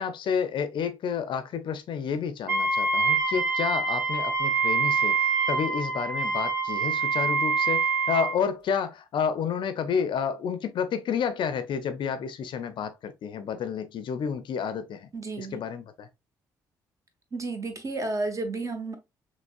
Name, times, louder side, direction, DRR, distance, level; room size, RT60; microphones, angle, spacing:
voice 1, 0.0-5.1 5.5-15.1 15.4-16.1, left 7 dB, 50° left, 0.5 m, -30 dB
Wind instrument woodwind instrument, 2.5-8.4, right 4 dB, 85° right, 0.6 m, -25 dB
voice 2, 15.1-15.6 17.3-19.0, right 3 dB, 30° right, 0.9 m, -32 dB
5.8 x 2.0 x 2.3 m
figure-of-eight pair, 45°, 10 cm